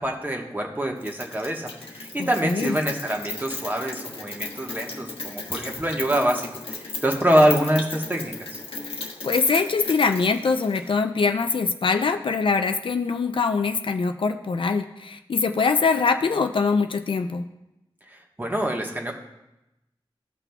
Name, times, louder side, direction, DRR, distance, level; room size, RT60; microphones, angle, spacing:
voice 1, 0.0-8.6 18.1-19.1, right 1 dB, 20° right, 1 dB, 1.3 m, -25 dB
Rain, 1.0-10.9, left 3 dB, 85° left, 1.1 m, -35 dB
voice 2, 2.2-2.8 9.2-17.4, left 4 dB, 65° left, 7 dB, 0.5 m, -23 dB
16.0 x 5.9 x 2.3 m, 0.92 s
wide cardioid pair, 70°, 9 cm